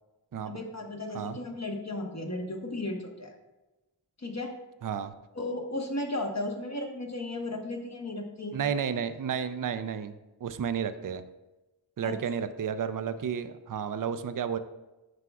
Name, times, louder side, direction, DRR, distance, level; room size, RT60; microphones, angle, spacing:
voice 1, 0.5-3.3 4.2-4.5 5.3-8.6 12.0-12.2, left 2 dB, 35° left, 2 dB, 1.1 m, -35 dB
voice 2, 4.8-5.1 8.5-11.2 12.0-14.6, right 7 dB, 45° right, 11 dB, 0.5 m, -32 dB
9.6 x 5.9 x 2.3 m, 1.1 s
wide cardioid pair, 55°, 45 cm